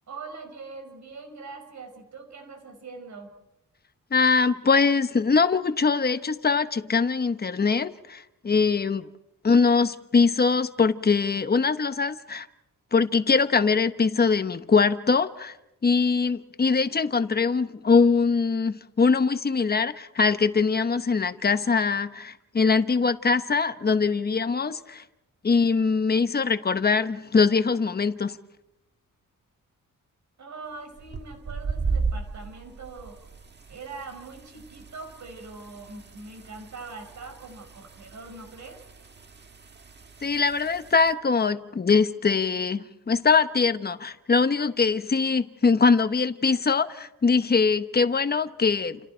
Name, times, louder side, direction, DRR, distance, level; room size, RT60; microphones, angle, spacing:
voice 1, 0.1-3.3 30.4-33.2 33.7-38.8, right 4 dB, 60° right, 5.4 m, -42 dB
voice 2, 4.1-9.1 9.4-12.5 12.9-15.6 15.8-25.0 25.4-28.4 40.2-49.0, left 4 dB, 30° left, 1.1 m, -22 dB
sound 1, 30.9-41.1, right 4 dB, 30° right, 1.5 m, -36 dB
29.5 x 29.0 x 4.5 m
wide cardioid pair, 140°, 32 cm